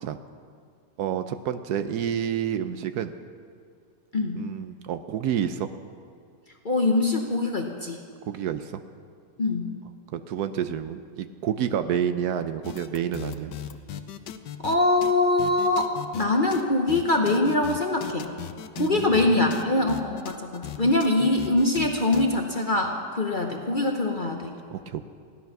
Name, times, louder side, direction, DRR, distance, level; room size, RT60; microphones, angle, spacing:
voice 1, 1.0-3.1 4.3-5.7 8.3-8.8 10.1-13.5 18.8-19.7 24.7-25.0, right 9 dB, 70° right, 10 dB, 1.1 m, -29 dB
voice 2, 6.6-8.0 9.4-9.7 14.6-18.3 18.8-24.5, left 2 dB, 40° left, 2 dB, 0.8 m, -23 dB
sound 1, 12.6-14.8 15.0-15.1 15.4-16.3 16.5-16.6 16.9-19.2 19.5-22.3, left 10 dB, 80° left, 1.3 m, -37 dB
16.0 x 11.5 x 5.9 m, 2.2 s
omnidirectional pair, 1.8 m